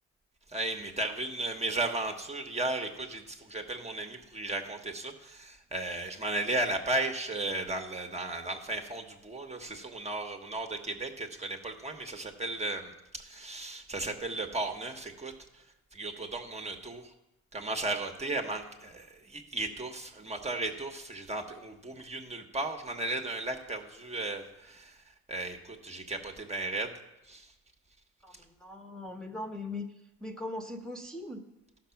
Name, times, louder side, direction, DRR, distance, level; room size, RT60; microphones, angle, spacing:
voice 1, 0.5-15.3 15.9-17.0 17.5-24.9 25.3-26.9 27.3-27.5, right 2 dB, 20° right, 4 dB, 1.2 m, -35 dB
voice 2, 28.6-29.9 30.2-31.4, left 2 dB, ahead, 0 dB, 1.1 m, -39 dB
13.5 x 6.0 x 5.8 m, 0.93 s
cardioid pair, 90°, 30 cm